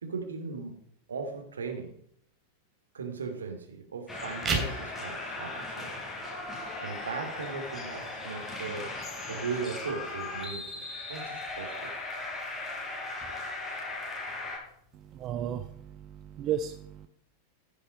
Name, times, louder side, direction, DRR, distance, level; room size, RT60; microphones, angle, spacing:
voice 1, 0.0-0.8 1.1-2.0 2.9-6.0 6.8-9.0 9.3-10.8 11.1-11.9, right 5 dB, 70° right, 4 dB, 2.6 m, -38 dB
sound 1, 4.1-14.6, left 2 dB, 10° left, 5.5 m, -38 dB
sound 2, 4.3-15.3, right 3 dB, 20° right, 2.9 m, -42 dB
voice 2, 14.9-17.1, right 9 dB, 35° right, 9 dB, 0.7 m, -35 dB
15.5 x 7.0 x 5.1 m, 0.70 s
figure-of-eight pair, 90°, 0 cm